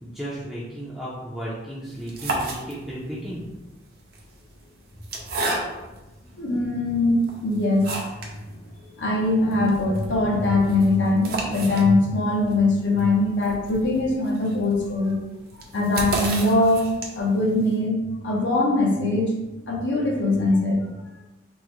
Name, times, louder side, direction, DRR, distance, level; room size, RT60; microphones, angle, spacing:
voice 1, 0.0-3.4, right 1 dB, ahead, -9 dB, 0.4 m, -34 dB
sound 1, 1.9-3.1 4.0-6.0 6.7-6.8 7.2-8.4 8.7-8.8 9.1-9.2 9.5-17.4, right 2 dB, 50° right, 0.5 m, -32 dB
voice 2, 6.3-7.9 9.0-15.2 15.7-16.8 17.1-18.0 18.2-19.3 19.7-20.8, left 2 dB, 75° left, -1 dB, 0.7 m, -21 dB
3.5 x 2.0 x 3.0 m, 1.1 s
head